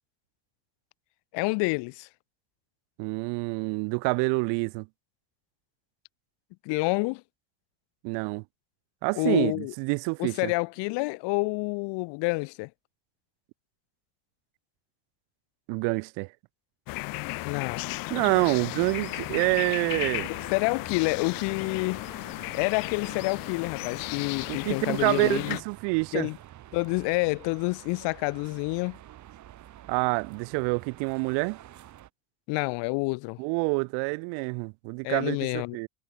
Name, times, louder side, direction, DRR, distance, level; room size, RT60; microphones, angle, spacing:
voice 1, 1.3-2.1 6.6-7.2 9.2-9.7 10.2-12.7 17.4-17.8 20.3-22.0 22.5-25.6 26.1-26.4 26.7-29.0 32.5-33.4 35.0-35.8, left 28 dB, 70° left, 1.2 m, -28 dB
voice 2, 3.0-4.9 8.0-8.4 9.0-10.5 15.7-16.3 18.1-20.3 24.5-26.3 29.9-31.6 33.4-35.9, right 35 dB, 70° right, 0.5 m, -27 dB
sound 1, 16.9-25.6, left 23 dB, 55° left, 0.5 m, -35 dB
sound 2, 18.9-32.1, right 13 dB, 40° right, 1.3 m, -49 dB
cardioid pair, 125°, 44 cm